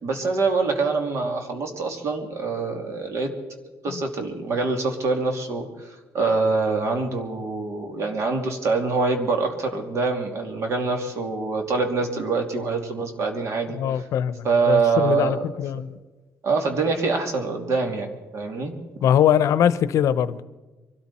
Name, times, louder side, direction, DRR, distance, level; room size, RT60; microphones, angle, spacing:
voice 1, 0.0-3.3 3.8-14.1 14.4-15.5 16.4-18.1 18.3-18.7, right 4 dB, 60° right, 4 dB, 2.7 m, -25 dB
voice 2, 13.7-16.0 19.0-20.4, left 9 dB, 70° left, 15 dB, 0.7 m, -22 dB
24.0 x 13.0 x 4.3 m, 1.2 s
cardioid pair, 115°, 6 cm